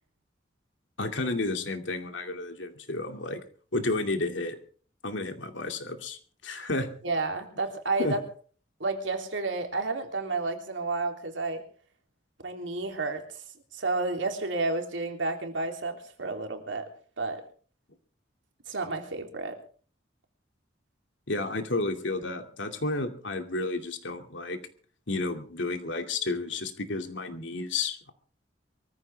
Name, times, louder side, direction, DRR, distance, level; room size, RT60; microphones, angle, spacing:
voice 1, 1.0-3.4 3.7-4.6 5.0-6.9 8.0-8.2 21.3-24.6 25.1-28.1, left 2 dB, 80° left, 6 dB, 2.5 m, -31 dB
voice 2, 7.0-8.2 8.8-11.6 12.4-13.2 13.7-16.9 17.2-17.4 18.7-19.6, right 3 dB, 90° right, 4 dB, 3.3 m, -31 dB
23.5 x 14.5 x 3.5 m, 0.43 s
head